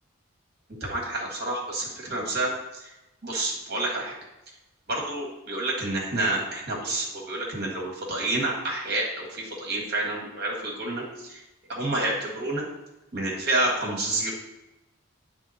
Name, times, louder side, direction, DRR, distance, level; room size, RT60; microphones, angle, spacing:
voice 1, 0.8-2.9 3.2-4.1 4.9-11.4 11.7-12.6 13.1-14.3, right 2 dB, 50° right, -2 dB, 1.7 m, -29 dB
9.1 x 3.6 x 4.2 m, 0.96 s
head